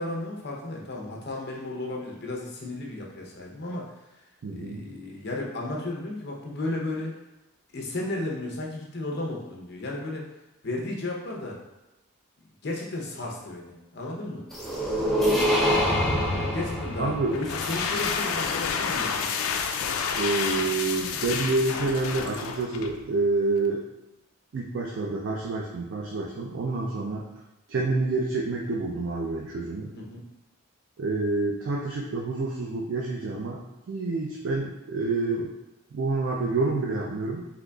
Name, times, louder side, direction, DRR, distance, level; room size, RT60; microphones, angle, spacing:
voice 1, 0.0-4.2 4.5-7.1 7.7-10.3 10.6-11.6 12.6-14.4 16.3-19.3 29.9-30.2, left 2 dB, 50° left, -1 dB, 0.7 m, -34 dB
voice 2, 4.4-4.9 17.0-17.4 20.1-23.8 24.5-27.3 27.7-29.9 31.0-35.5 35.9-37.4, right 3 dB, 60° right, -2 dB, 0.4 m, -28 dB
sound 1, 14.5-18.5, equal, ahead, 0.4 m, -26 dB
sound 2, 17.3-23.0, left 6 dB, 80° left, 0.3 m, -29 dB
3.8 x 2.8 x 2.2 m, 0.98 s
head